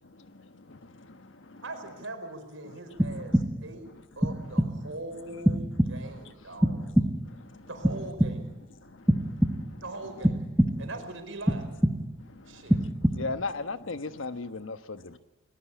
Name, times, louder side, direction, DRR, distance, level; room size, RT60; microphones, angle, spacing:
voice 1, 0.0-1.6 3.3-3.4 4.8-4.9 6.0-6.9 7.3-7.7 8.8-9.8 10.7-10.8 12.2-12.4 13.0-13.2 15.1-15.2, left 2 dB, 70° left, 1.4 m, -53 dB
voice 2, 1.6-3.9 4.2-6.8 7.7-8.5 9.8-10.4 10.8-11.7 12.5-12.8, right 2 dB, 85° right, 4.8 m, -41 dB
sound 1, 3.0-3.8 4.2-4.9 5.5-6.2 6.6-7.4 7.8-8.7 9.1-9.9 10.2-11.0 11.5-12.3 12.7-13.5, equal, 5° right, 1.0 m, -26 dB
voice 3, 13.1-15.2, left 3 dB, 90° left, 1.1 m, -34 dB
20.5 x 20.5 x 8.4 m
head